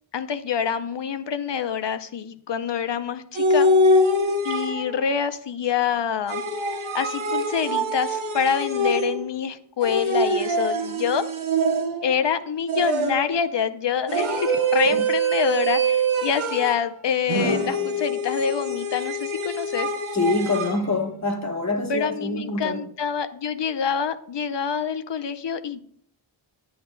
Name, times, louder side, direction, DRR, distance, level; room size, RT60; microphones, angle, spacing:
voice 1, 0.1-3.7 4.4-6.4 6.8-11.3 12.0-19.9 21.9-25.8, left 7 dB, 65° left, 0.7 m, -26 dB
sound 1, 3.4-5.1 6.3-9.4 9.8-12.2 12.7-13.4 14.1-16.9 17.3-20.8, right 1 dB, 85° right, 0.9 m, -24 dB
voice 2, 20.1-22.8, left 2 dB, 35° left, 1.1 m, -25 dB
9.6 x 8.8 x 2.2 m
wide cardioid pair, 65°, 47 cm